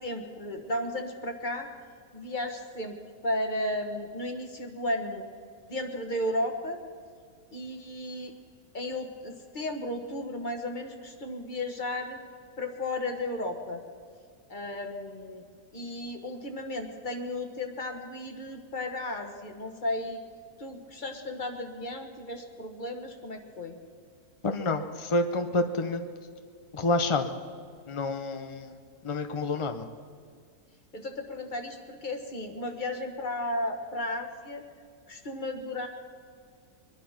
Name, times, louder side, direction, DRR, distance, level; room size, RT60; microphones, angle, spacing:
voice 1, 0.0-1.7 2.1-3.0 3.2-5.3 5.7-6.8 7.5-8.3 8.7-12.2 12.6-13.8 14.5-15.4 15.7-20.2 20.6-23.8 30.9-34.6 35.1-35.9, left 1 dB, 30° left, 4 dB, 1.5 m, -34 dB
voice 2, 24.4-26.1 26.7-27.3 27.9-28.8 29.0-29.9, left 2 dB, 50° left, 7 dB, 0.3 m, -28 dB
23.0 x 10.5 x 5.8 m, 2.1 s
omnidirectional pair, 1.7 m